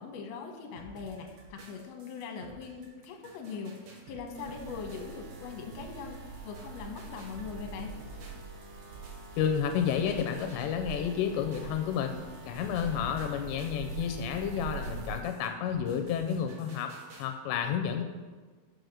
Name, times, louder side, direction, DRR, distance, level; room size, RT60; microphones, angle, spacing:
voice 1, 0.0-8.0, left 5 dB, 70° left, 2 dB, 2.7 m, -41 dB
sound 1, 0.8-12.0 12.3-17.3, right 3 dB, 60° right, 2.3 m, -52 dB
sound 2, 4.4-15.2, right 3 dB, 80° right, 3.6 m, -44 dB
voice 2, 9.4-16.9 17.2-18.0, left 8 dB, 85° left, 6 dB, 2.8 m, -31 dB
6.6 x 6.4 x 6.4 m, 1.4 s
omnidirectional pair, 5.1 m